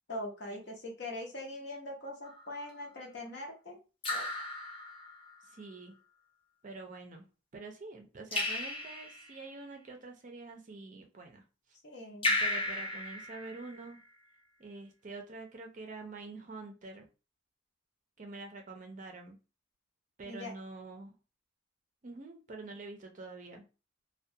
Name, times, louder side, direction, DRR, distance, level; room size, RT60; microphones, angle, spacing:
voice 1, 0.1-3.8 4.1-4.3 11.8-12.4 20.3-20.5, left 1 dB, 55° left, 0 dB, 0.7 m, -42 dB
Raindrop / Drip, 2.2-2.7 4.0-5.4 8.3-9.4 12.2-14.0, left 2 dB, 25° left, 0.5 m, -34 dB
voice 2, 5.5-5.9 6.6-7.2 7.5-11.4 12.4-14.0 14.6-17.1 18.2-19.4 20.2-21.1 22.0-23.7, right 3 dB, 40° right, 3 dB, 0.4 m, -46 dB
2.3 x 2.2 x 2.6 m, 0.32 s
head